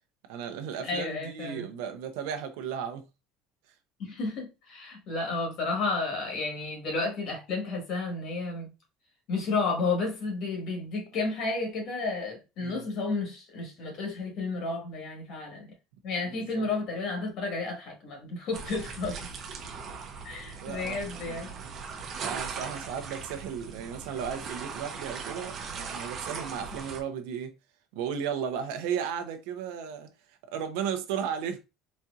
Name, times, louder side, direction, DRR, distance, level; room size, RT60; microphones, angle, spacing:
voice 1, 0.3-3.0 12.6-12.9 16.3-16.7 20.6-21.0 21.2-21.7 22.2-27.5 27.9-30.1 30.5-31.6, right 7 dB, 80° right, 0.7 m, -35 dB
voice 2, 0.8-1.7 4.0-8.7 9.3-15.7 16.0-19.3 20.2-21.5, left 3 dB, 45° left, 1.3 m, -32 dB
sound 1, 18.5-27.0, right 5 dB, 30° right, 0.6 m, -39 dB
4.2 x 2.7 x 2.4 m
cardioid pair, 170°, 0 cm